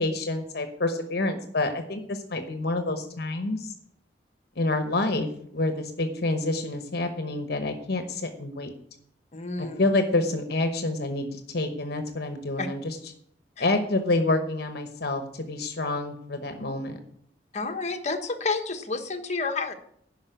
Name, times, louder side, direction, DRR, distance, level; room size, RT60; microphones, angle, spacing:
voice 1, 0.0-3.7 4.6-5.3 5.5-8.7 9.8-12.9 13.6-17.0, left 2 dB, 65° left, 7 dB, 1.1 m, -28 dB
voice 2, 9.3-9.8 12.6-12.7 13.6-13.7 17.5-19.7, left 3 dB, 40° left, 6 dB, 1.2 m, -30 dB
10.5 x 5.6 x 8.0 m, 0.67 s
head